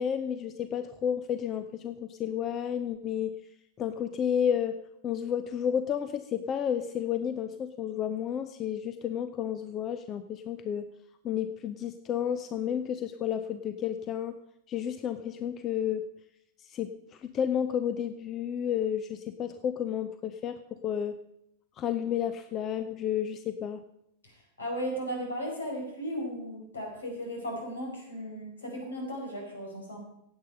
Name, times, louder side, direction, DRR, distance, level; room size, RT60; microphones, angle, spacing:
voice 1, 0.0-3.3 3.8-4.7 5.0-10.9 11.2-14.4 14.7-16.0 16.6-21.1 21.8-23.8, left 9 dB, 30° left, 11 dB, 0.7 m, -31 dB
voice 2, 24.2-30.0, equal, 70° left, 1 dB, 4.7 m, -36 dB
16.0 x 8.9 x 5.5 m, 0.79 s
figure-of-eight pair, 90°, 0 cm